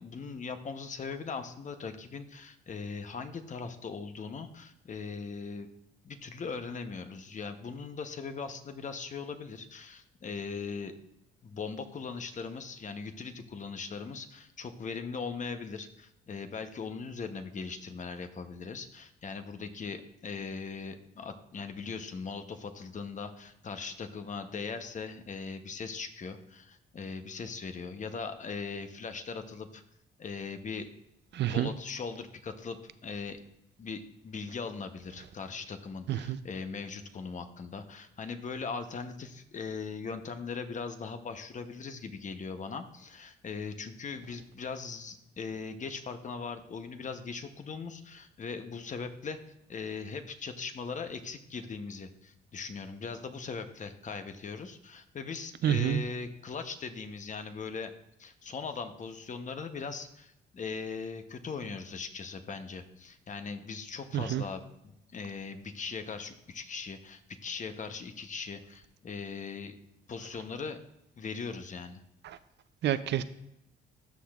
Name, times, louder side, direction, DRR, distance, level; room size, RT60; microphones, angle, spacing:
voice 1, 0.0-5.7 6.0-10.9 11.4-29.8 30.2-30.9 31.5-32.8 33.0-33.4 33.8-49.4 49.7-57.9 58.2-69.7 70.1-70.8 71.2-72.0, left 5 dB, 40° left, 8 dB, 0.8 m, -40 dB
voice 2, 31.3-31.7 36.1-36.4 55.6-56.0 64.1-64.4 72.2-72.4 72.8-73.2, right 11 dB, 60° right, 13 dB, 0.4 m, -28 dB
13.0 x 5.8 x 2.4 m, 0.84 s
cardioid pair, 90°, 20 cm